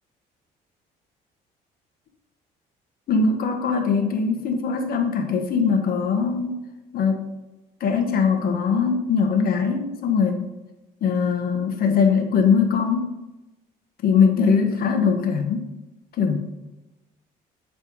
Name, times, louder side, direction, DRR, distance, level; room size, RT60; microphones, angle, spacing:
voice 1, 3.1-6.6 6.9-7.3 7.8-10.4 11.0-13.2 14.0-15.7 16.2-16.6, left 5 dB, 60° left, 4 dB, 1.4 m, -21 dB
8.6 x 3.5 x 5.4 m, 1.0 s
cardioid pair, 110°, 17 cm